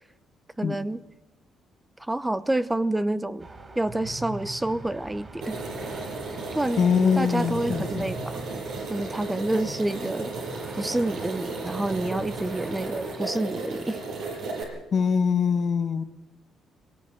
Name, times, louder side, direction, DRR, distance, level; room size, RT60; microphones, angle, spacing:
voice 1, 0.6-1.0 2.0-3.5 3.8-5.6 6.5-6.8 7.2-8.5 8.9-10.3 10.8-14.0, right 1 dB, 10° right, 13 dB, 0.8 m, -28 dB
sound 1, 3.4-13.2, right 3 dB, 30° right, 3.7 m, -42 dB
sound 2, 5.4-14.6, right 3 dB, 85° right, 6.3 m, -34 dB
voice 2, 6.8-8.1 14.9-16.0, left 6 dB, 55° left, 10 dB, 1.3 m, -23 dB
21.0 x 18.5 x 8.0 m, 1.0 s
cardioid pair, 90°, 0 cm